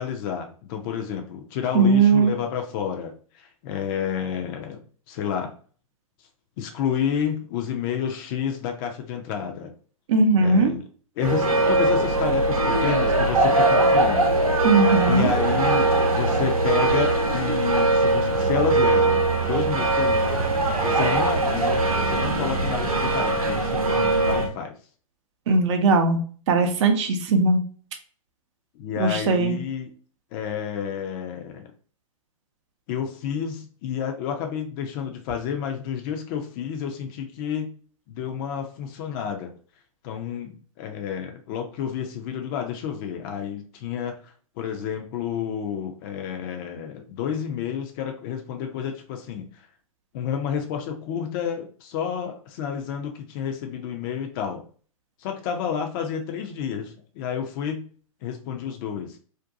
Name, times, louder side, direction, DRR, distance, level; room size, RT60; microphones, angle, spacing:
voice 1, 0.0-4.8 5.1-5.5 6.6-9.7 10.4-10.8 11.2-14.7 15.0-20.5 20.8-24.7 28.8-29.9 30.3-31.7 32.9-37.7 38.1-39.5 40.0-49.5 50.1-54.6 55.2-57.9 58.2-59.2, left 8 dB, 40° left, 4 dB, 0.4 m, -30 dB
voice 2, 1.7-2.3 10.1-10.7 14.6-15.3 25.5-26.2 26.5-27.6 29.0-29.6, right 3 dB, 55° right, 5 dB, 0.5 m, -19 dB
sound 1, 11.2-24.5, right 2 dB, 90° right, 0.7 m, -21 dB
2.5 x 2.2 x 2.5 m, 0.43 s
hypercardioid pair, 120°, 18 cm